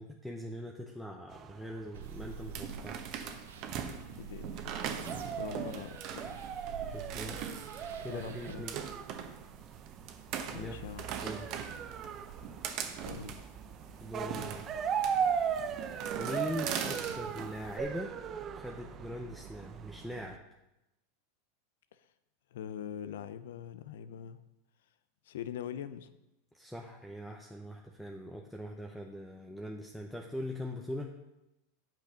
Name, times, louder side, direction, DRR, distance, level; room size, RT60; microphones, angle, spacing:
voice 1, 0.0-3.0 6.9-7.4 8.0-8.8 10.5-10.7 11.2-11.5 14.0-14.7 16.1-18.2 18.5-20.4 26.5-31.1, equal, ahead, 0 dB, 0.8 m, -41 dB
sound 1, 1.3-20.4, right 7 dB, 35° right, 0.6 m, -39 dB
sound 2, 1.9-8.5, right 6 dB, 80° right, 0.8 m, -48 dB
sound 3, 2.0-17.8, right 8 dB, 50° right, 1.1 m, -41 dB
voice 2, 4.1-4.7 5.4-6.4 7.5-7.6 8.1-8.7 10.5-11.1 12.9-13.4 22.5-24.4 25.3-26.1, left 9 dB, 75° left, 13 dB, 0.6 m, -43 dB
8.5 x 6.1 x 5.1 m, 0.93 s
hypercardioid pair, 110°, 0 cm